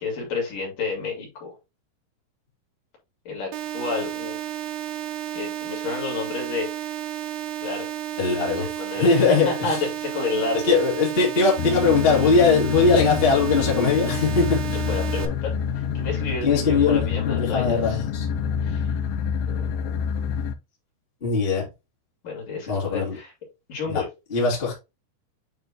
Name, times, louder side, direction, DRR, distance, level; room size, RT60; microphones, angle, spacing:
voice 1, 0.0-1.6 3.3-4.4 5.3-6.9 7.6-7.9 8.6-10.7 14.7-18.0 18.6-18.9 19.5-20.0 22.2-23.3 23.7-24.1, left 4 dB, 55° left, 4.1 m, -30 dB
sound 1, 3.5-15.3, right 11 dB, 90° right, 2.9 m, -32 dB
voice 2, 8.2-8.7 9.0-9.8 10.3-14.8 16.4-18.3 21.2-21.6 22.7-23.2 23.9-24.0 24.3-24.7, left 4 dB, 20° left, 1.9 m, -21 dB
sound 2, 11.6-20.5, left 7 dB, 80° left, 2.3 m, -27 dB
9.1 x 3.8 x 3.0 m
omnidirectional pair, 4.6 m